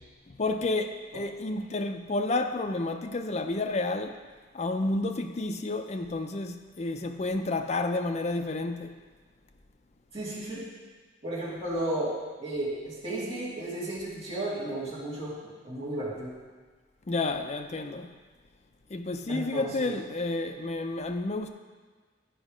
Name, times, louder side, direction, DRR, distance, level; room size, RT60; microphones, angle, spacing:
voice 1, 0.3-4.2 4.5-9.0 17.1-18.1 18.9-21.5, left 2 dB, 35° left, 0.5 m, -30 dB
voice 2, 10.1-10.6 11.2-12.1 12.4-16.3 19.3-19.9, right 1 dB, 30° right, 2.5 m, -33 dB
10.0 x 5.3 x 5.0 m
head